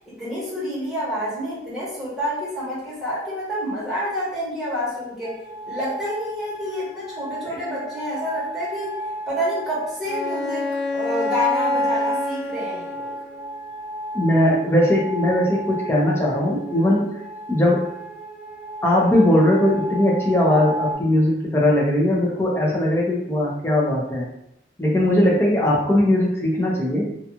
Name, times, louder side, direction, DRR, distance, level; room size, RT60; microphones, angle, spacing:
voice 1, 0.1-5.4 5.7-9.0 9.3-13.1, equal, ahead, -10 dB, 1.0 m, -28 dB
sound 1, 5.2-20.9, right 1 dB, 60° left, 1.1 m, -32 dB
Bowed string instrument, 10.0-13.6, left 2 dB, 80° left, 0.4 m, -29 dB
voice 2, 14.1-17.1 17.5-17.9 18.8-24.2 24.8-27.1, left 1 dB, 15° left, -4 dB, 0.6 m, -19 dB
2.5 x 2.3 x 2.8 m, 0.80 s
head